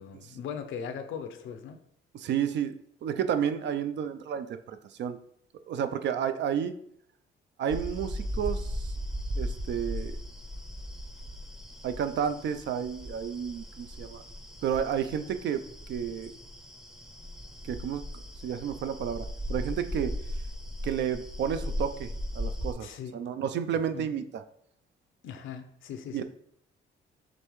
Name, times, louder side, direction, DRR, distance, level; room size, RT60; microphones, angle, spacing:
voice 1, 0.0-1.8 22.8-23.2 23.9-24.1 25.2-26.2, left 7 dB, 80° left, 8 dB, 0.6 m, -39 dB
voice 2, 2.1-2.7 3.0-5.2 5.7-6.7 7.6-8.9 9.4-10.2 11.8-14.2 14.6-16.3 17.6-18.0 18.4-20.2 20.8-24.4 26.1-26.2, right 8 dB, 65° right, 10 dB, 0.4 m, -31 dB
sound 1, 7.7-22.7, equal, 5° right, 0.6 m, -37 dB
5.2 x 3.2 x 3.1 m, 0.69 s
cardioid pair, 90°, 20 cm